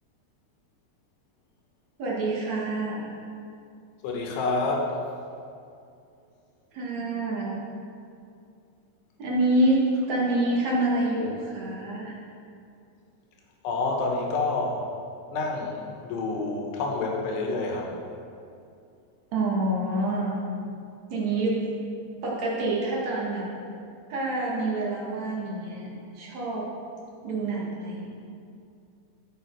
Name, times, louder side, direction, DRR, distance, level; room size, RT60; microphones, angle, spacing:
voice 1, 2.0-3.1 6.7-7.5 9.2-12.1 19.3-20.4 21.1-21.6 22.2-23.5 24.1-25.9 26.2-26.7 27.2-28.1, right 2 dB, 50° right, -5 dB, 2.5 m, -27 dB
voice 2, 4.0-4.9 13.6-14.8 15.3-17.9, left 3 dB, 75° left, 0 dB, 3.2 m, -28 dB
14.0 x 6.2 x 4.7 m, 2.5 s
omnidirectional pair, 5.1 m